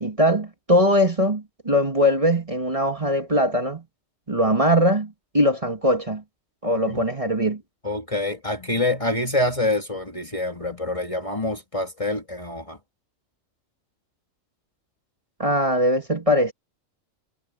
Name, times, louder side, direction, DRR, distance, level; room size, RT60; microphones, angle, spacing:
voice 1, 0.0-3.8 4.3-6.2 6.6-7.6 15.4-16.5, equal, 25° right, 2.0 m, -21 dB
voice 2, 7.8-12.8, left 2 dB, 25° left, 2.1 m, -26 dB
omnidirectional pair, 1.4 m